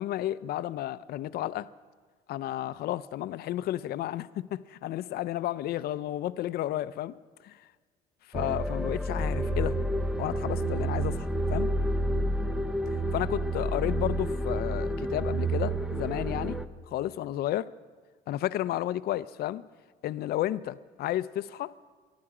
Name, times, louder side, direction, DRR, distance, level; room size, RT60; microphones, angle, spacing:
voice 1, 0.0-1.7 2.3-7.1 7.4-7.6 8.3-9.8 10.2-11.7 13.1-16.6 16.9-17.7 18.3-19.6 20.0-21.7, left 13 dB, 65° left, 15 dB, 0.5 m, -32 dB
sound 1, 8.3-16.7, right 1 dB, 5° right, 0.7 m, -29 dB
22.5 x 11.5 x 4.9 m, 1.5 s
cardioid pair, 110°, 17 cm